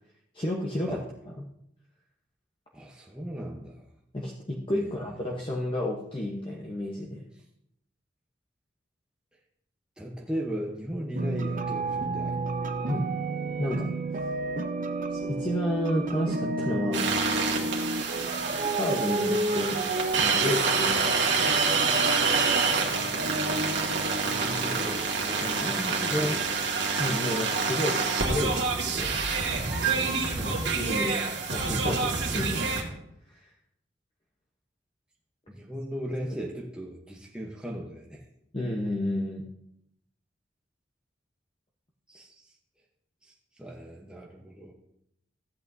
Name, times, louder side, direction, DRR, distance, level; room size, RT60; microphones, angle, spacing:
voice 1, 0.3-1.0 1.4-1.5 4.1-7.2 12.9-13.1 13.6-13.9 15.1-17.1 18.7-19.8 20.2-21.1 25.4-25.7 26.1-26.4 27.0-29.2 30.4-32.6 33.3-33.4 38.5-39.5, left 1 dB, 30° left, -2 dB, 1.0 m, -31 dB
voice 2, 2.7-3.9 4.7-5.1 10.0-12.4 20.8-21.0 22.2-22.5 23.8-26.4 29.9-30.3 35.5-38.2 38.6-38.7 42.1-42.5 43.2-44.7, equal, 5° right, -3 dB, 0.9 m, -38 dB
sound 1, 11.2-24.9, right 2 dB, 45° right, 0.7 m, -31 dB
sound 2, 16.9-32.8, right 4 dB, 70° right, 1.9 m, -27 dB
15.0 x 8.4 x 2.7 m, 0.77 s
head